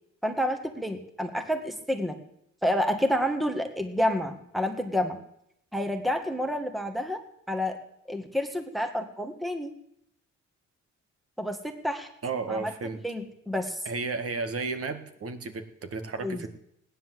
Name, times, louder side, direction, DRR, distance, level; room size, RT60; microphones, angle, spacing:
voice 1, 0.2-2.2 2.6-5.2 5.7-7.2 7.5-7.8 8.1-9.7 11.4-12.1 12.5-12.7 13.0-13.8 16.2-16.5, equal, ahead, 5 dB, 1.9 m, -29 dB
voice 2, 12.2-13.0 13.9-16.5, right 4 dB, 50° right, 9 dB, 2.0 m, -33 dB
16.5 x 10.0 x 7.8 m, 0.76 s
cardioid pair, 90°, 30 cm